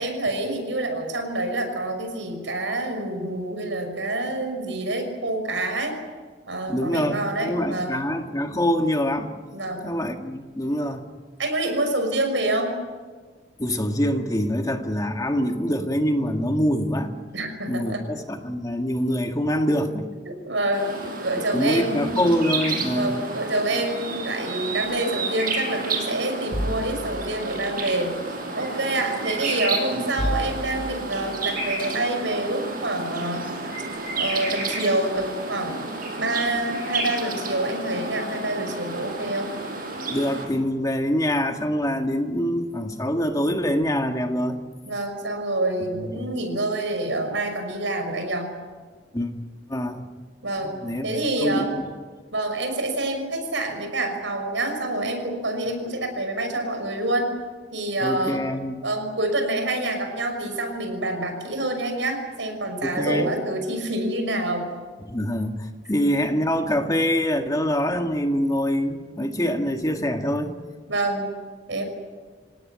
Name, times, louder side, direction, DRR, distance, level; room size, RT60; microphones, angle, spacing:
voice 1, 0.0-6.0 6.5-8.0 9.5-9.9 11.4-12.7 17.3-18.0 20.3-20.9 21.2-22.2 22.9-28.1 28.6-33.5 34.2-35.8 36.2-39.5 44.8-48.5 50.4-50.8 51.0-51.7 52.3-57.3 57.7-58.4 58.8-64.7 70.9-71.3 71.7-71.8, right 2 dB, 85° right, 5 dB, 6.0 m, -27 dB
voice 2, 6.7-9.3 9.8-11.0 13.6-17.1 17.7-20.0 21.5-23.2 29.9-30.0 40.1-44.6 46.0-46.3 49.1-49.4 49.7-50.1 50.6-51.1 51.4-51.9 58.0-58.8 62.8-63.3 65.1-70.5, equal, 20° left, 5 dB, 1.8 m, -25 dB
sound 1, 20.7-40.5, right 3 dB, 50° right, 6.3 m, -31 dB
sound 2, 24.8-25.0 26.5-28.1 29.3-29.4 30.1-31.9 33.5-33.6 33.8-34.4 35.1-35.7 36.4-36.6, equal, 25° right, 4.4 m, -33 dB
27.0 x 18.0 x 10.0 m, 1.5 s
head